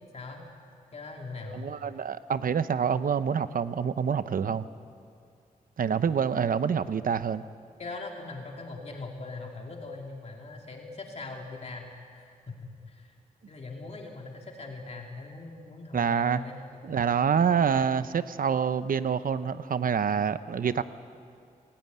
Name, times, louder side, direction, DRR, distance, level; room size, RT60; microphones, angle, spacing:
voice 1, 0.9-1.7 7.8-13.1 13.5-16.6 16.9-17.2, left 3 dB, 45° left, 1 dB, 2.7 m, -41 dB
voice 2, 1.5-4.7 5.8-7.4 15.9-16.4 16.8-20.8, right 7 dB, 75° right, 13 dB, 0.9 m, -26 dB
28.5 x 18.0 x 9.4 m, 2.3 s
wide cardioid pair, 145°, 14 cm